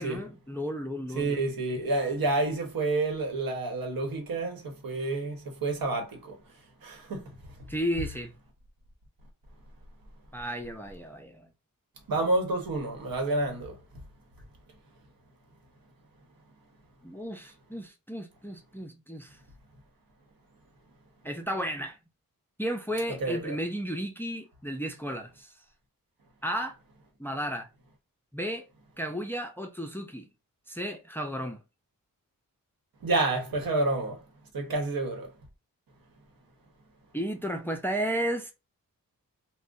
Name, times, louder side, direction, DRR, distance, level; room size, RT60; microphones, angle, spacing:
voice 1, 0.0-1.4 7.7-8.3 10.3-11.5 17.0-19.4 21.2-22.0 22.6-25.5 26.4-26.8 27.2-27.7 28.3-28.7 29.0-30.3 30.7-31.6 37.1-38.5, equal, 5° left, 0.4 m, -33 dB
voice 2, 1.1-6.4 6.8-7.3 12.1-13.8 23.2-23.6 33.0-34.2 34.5-35.3, right 2 dB, 85° right, 1.1 m, -29 dB
2.5 x 2.1 x 3.8 m
wide cardioid pair, 105°, 34 cm